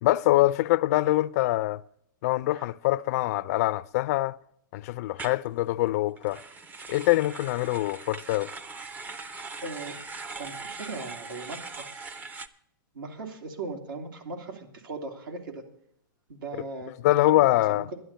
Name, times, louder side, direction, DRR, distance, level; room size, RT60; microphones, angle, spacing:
voice 1, 0.0-1.8 2.2-4.4 4.7-6.4 6.9-8.5 17.0-17.9, left 17 dB, 45° left, 0.4 m, -24 dB
sound 1, 5.2-5.4 6.2-12.5, right 4 dB, 15° right, 0.5 m, -41 dB
voice 2, 9.6-10.0 10.4-12.1 12.9-15.6 16.3-16.9 17.3-18.0, right 3 dB, 75° right, 2.9 m, -39 dB
11.5 x 11.0 x 5.5 m
hypercardioid pair, 140°, 11 cm